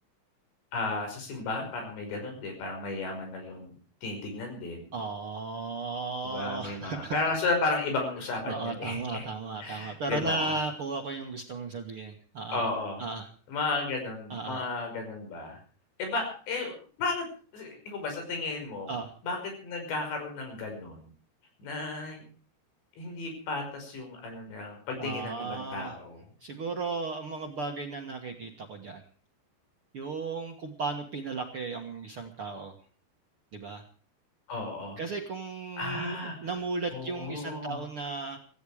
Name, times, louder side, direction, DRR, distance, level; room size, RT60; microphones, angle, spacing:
voice 1, 0.7-3.7 4.0-4.9 6.2-9.3 9.6-10.6 12.5-13.1 13.5-15.6 16.0-16.7 17.0-17.3 17.5-18.9 19.2-21.1 21.6-22.2 23.0-26.2 34.5-35.0 35.8-36.5 36.9-37.8, left 3 dB, 85° left, 4 dB, 7.8 m, -34 dB
voice 2, 4.9-7.2 8.5-12.6 13.0-13.3 14.3-14.7 18.9-19.1 25.0-25.9 26.4-29.0 29.9-32.7 33.5-33.8 35.0-38.4, right 3 dB, 60° right, 3 dB, 1.4 m, -35 dB
17.5 x 16.0 x 4.9 m, 0.41 s
omnidirectional pair, 4.9 m